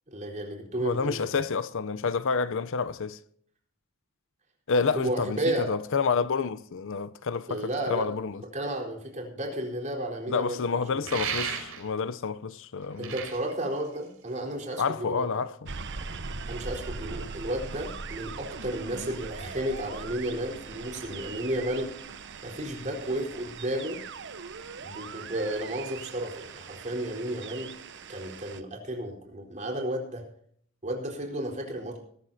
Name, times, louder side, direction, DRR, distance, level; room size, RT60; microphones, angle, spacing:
voice 1, 0.1-1.2 4.9-5.7 7.5-8.1 8.4-11.1 13.0-15.3 16.5-21.9 22.4-24.0 24.8-27.7 28.1-30.2 30.8-32.0, right 1 dB, 35° right, 4.2 m, -33 dB
voice 2, 0.8-3.2 4.7-8.4 10.3-13.1 14.8-15.7, left 5 dB, 65° left, 0.6 m, -29 dB
sound 1, 11.0-12.0 12.8-14.5, right 7 dB, 75° right, 5.2 m, -34 dB
sound 2, 15.7-28.6, right 4 dB, 55° right, 1.0 m, -40 dB
21.0 x 13.0 x 2.8 m
head